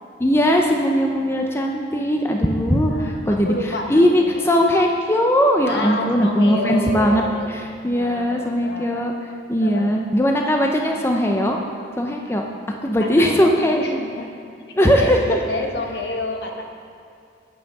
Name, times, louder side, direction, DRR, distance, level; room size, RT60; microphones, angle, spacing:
voice 1, 0.2-7.2 7.8-9.1 9.5-11.6 12.0-12.4 12.8-13.8 14.7-15.4, equal, 15° left, 1 dB, 0.5 m, -19 dB
voice 2, 2.9-4.5 5.7-7.5 8.0-9.1 9.6-9.9 13.0-14.3 14.8-16.6, left 2 dB, 70° left, 2 dB, 1.1 m, -29 dB
9.6 x 5.6 x 6.6 m, 2.4 s
head